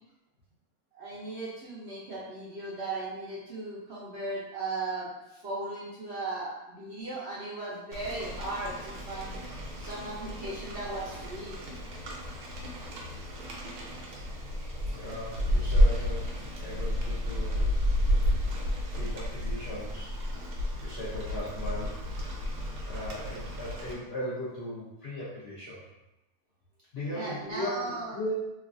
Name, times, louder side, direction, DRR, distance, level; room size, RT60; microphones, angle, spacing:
voice 1, 0.9-11.6 27.1-28.1, right 2 dB, 65° right, -6 dB, 0.7 m, -37 dB
Rain, 7.9-23.9, equal, 85° right, 1.2 m, -31 dB
voice 2, 14.8-16.3 16.6-17.7 18.9-20.1 20.8-22.0 22.9-25.8 26.9-28.4, equal, 60° left, -8 dB, 0.6 m, -37 dB
3.0 x 2.3 x 2.4 m, 0.96 s
omnidirectional pair, 1.6 m